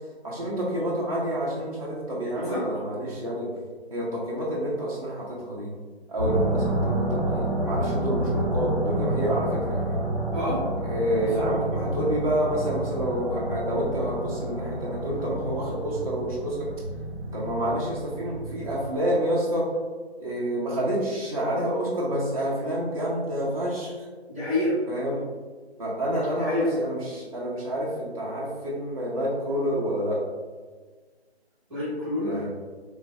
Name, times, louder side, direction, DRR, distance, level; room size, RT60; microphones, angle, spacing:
voice 1, 0.2-3.5 3.9-5.7 6.1-10.0 10.8-16.7 17.3-19.7 20.2-24.1 24.9-25.2 25.8-30.2 32.2-32.5, right 1 dB, 35° right, -6 dB, 0.4 m, -28 dB
voice 2, 2.3-2.7 10.3-10.7 11.2-11.5 24.3-24.8 26.4-26.7 31.7-32.5, left 1 dB, ahead, -12 dB, 1.1 m, -28 dB
sound 1, 6.2-18.9, right 1 dB, 15° left, 0.6 m, -29 dB
3.1 x 2.5 x 2.2 m, 1.4 s
figure-of-eight pair, 150°, 33 cm